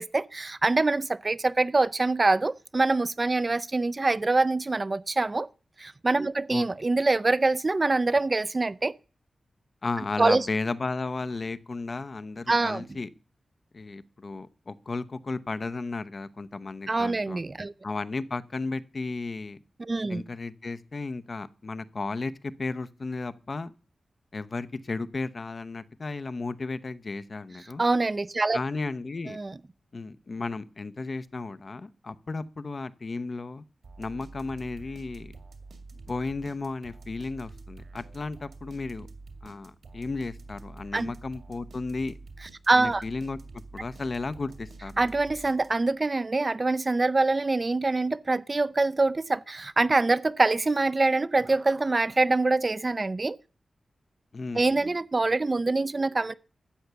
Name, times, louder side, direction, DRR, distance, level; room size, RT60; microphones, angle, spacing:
voice 1, 0.0-5.5 5.8-8.9 10.2-10.5 12.5-12.9 16.9-17.7 19.8-20.2 27.8-28.6 29.3-29.5 40.9-41.1 42.7-43.0 45.0-53.4 54.5-56.3, right 3 dB, 35° right, 0.5 m, -25 dB
voice 2, 9.8-13.1 13.7-17.4 17.8-19.6 20.1-23.7 24.3-27.8 28.5-29.4 29.9-33.6 34.0-35.3 36.1-39.1 39.4-42.1 42.7-45.0 54.3-54.9, left 3 dB, 50° left, 0.8 m, -34 dB
sound 1, 33.8-46.0, right 3 dB, 75° right, 2.4 m, -47 dB
13.0 x 7.9 x 6.9 m
wide cardioid pair, 75°, 0 cm